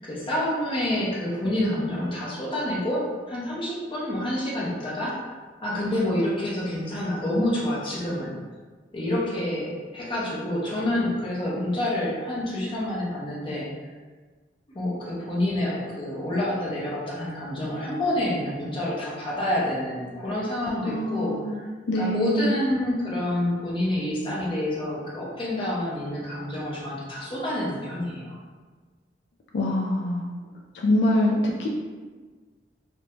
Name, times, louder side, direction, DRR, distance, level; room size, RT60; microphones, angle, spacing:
voice 1, 0.0-5.2 5.6-8.4 8.9-13.7 14.7-21.7 21.9-28.3, left 1 dB, 30° left, -6 dB, 0.7 m, -28 dB
voice 2, 20.8-21.6 21.9-22.5 29.5-30.2 30.7-31.7, left 1 dB, 75° left, -1 dB, 0.3 m, -24 dB
2.5 x 2.1 x 3.0 m, 1.4 s
head